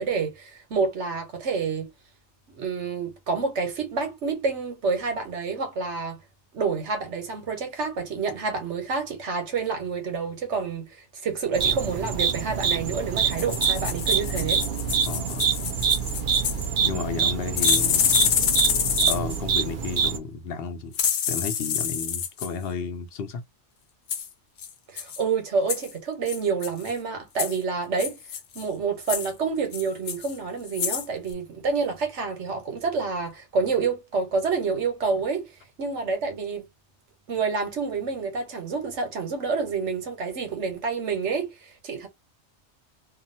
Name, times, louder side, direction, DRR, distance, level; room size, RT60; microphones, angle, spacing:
voice 1, 0.0-1.9 2.6-6.2 6.5-14.6 24.9-28.2 28.5-35.5 35.8-36.7 37.3-42.1, right 5 dB, 85° right, 1.3 m, -28 dB
sound 1, 11.5-20.2, right 6 dB, 60° right, 0.6 m, -25 dB
sound 2, 13.3-16.7 17.6-19.4 20.9-22.5 24.1-24.3 24.6-24.7 25.0-25.2 25.7-25.9 26.3-26.9 27.4-27.6 28.0-28.6 29.0-29.3 29.7-30.4 30.7-31.1 31.3-31.4, left 8 dB, 80° left, 1.0 m, -27 dB
voice 2, 15.1-15.5 16.8-18.0 19.0-21.0 21.3-23.4, left 5 dB, 65° left, 0.7 m, -32 dB
2.8 x 2.4 x 2.6 m
omnidirectional pair, 1.2 m